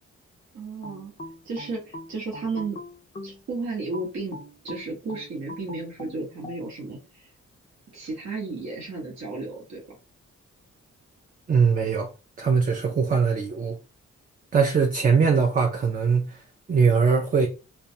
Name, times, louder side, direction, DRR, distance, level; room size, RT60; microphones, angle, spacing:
voice 1, 0.5-1.1 1.4-2.8 3.2-7.3 7.9-9.8, right 3 dB, 65° right, 1.0 m, -33 dB
sound 1, 0.8-3.4 3.9-6.6, left 1 dB, 25° left, 0.5 m, -40 dB
voice 2, 11.5-12.1 12.4-13.8 14.5-16.4 16.7-17.5, right 5 dB, 30° right, 0.4 m, -21 dB
2.3 x 2.2 x 2.6 m
cardioid pair, 70°, 30 cm